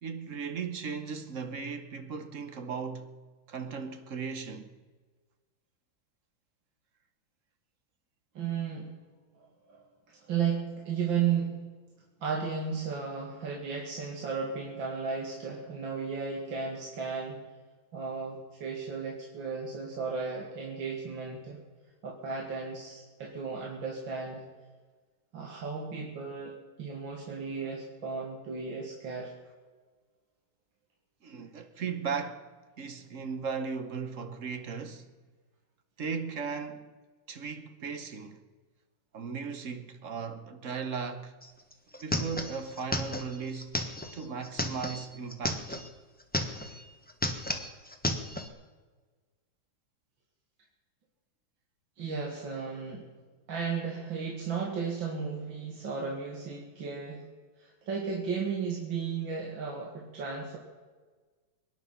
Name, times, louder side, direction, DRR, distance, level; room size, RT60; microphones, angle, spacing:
voice 1, 0.0-3.1 3.5-4.7 31.2-32.5 32.8-35.1 36.0-36.9 37.3-38.4 39.1-41.3 42.0-43.8 44.1-45.8, right 5 dB, 50° right, 1.1 m, -37 dB
voice 2, 8.3-8.9 9.4-9.8 10.1-11.5 12.2-17.4 17.9-21.6 22.0-24.4 25.3-29.3 52.0-53.1 53.5-57.2 57.6-60.6, right 6 dB, 65° right, 2.7 m, -34 dB
sound 1, 41.4-41.5 41.7-45.9 46.2-46.8 47.1-48.5, left 1 dB, 5° left, 0.8 m, -33 dB
23.0 x 10.0 x 5.7 m
omnidirectional pair, 2.2 m